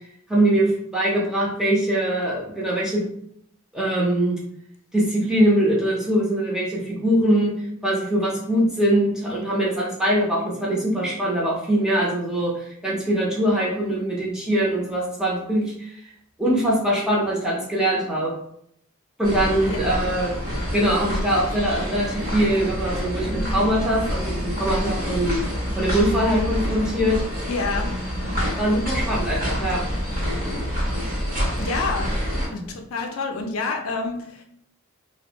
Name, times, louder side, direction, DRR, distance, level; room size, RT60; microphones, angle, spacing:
voice 1, 0.3-3.0 3.7-4.4 4.9-16.0 16.4-18.3 19.2-20.4 20.7-25.4 25.8-27.2 28.6-29.8, right 1 dB, 5° right, -6 dB, 0.5 m, -22 dB
sound 1, 19.2-32.5, equal, 40° right, 0.9 m, -27 dB
voice 2, 27.5-28.1 31.6-32.1 32.5-34.4, left 3 dB, 70° left, 3 dB, 0.4 m, -28 dB
2.5 x 2.0 x 2.8 m, 0.72 s
head